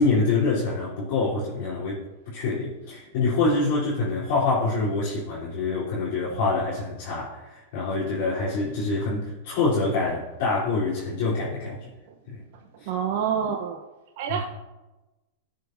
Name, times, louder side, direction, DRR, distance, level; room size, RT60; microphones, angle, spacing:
voice 1, 0.0-11.9 12.3-12.4 12.8-12.9 14.3-14.4, left 3 dB, 55° left, -8 dB, 3.4 m, -26 dB
voice 2, 12.9-13.8 14.2-14.4, right 7 dB, 55° right, 2 dB, 0.9 m, -27 dB
15.0 x 8.0 x 2.7 m, 1.1 s
hypercardioid pair, 105°, 0 cm